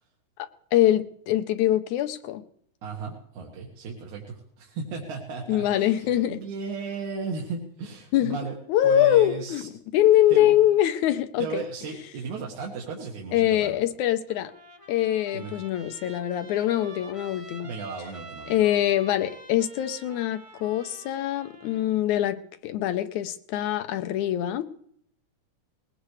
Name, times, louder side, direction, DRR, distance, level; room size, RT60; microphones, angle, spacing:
voice 1, 0.4-2.4 5.5-6.4 8.1-8.4 8.7-11.6 13.3-14.5 14.9-17.7 18.5-24.7, left 12 dB, 90° left, 9 dB, 2.3 m, -24 dB
voice 2, 2.8-8.5 8.8-9.7 10.3-10.5 11.4-13.8 15.3-15.5 17.6-18.6, right 5 dB, 80° right, -1 dB, 3.2 m, -35 dB
Trumpet, 14.3-21.9, right 2 dB, 30° right, 0.5 m, -47 dB
20.5 x 18.5 x 3.3 m, 0.68 s
omnidirectional pair, 3.3 m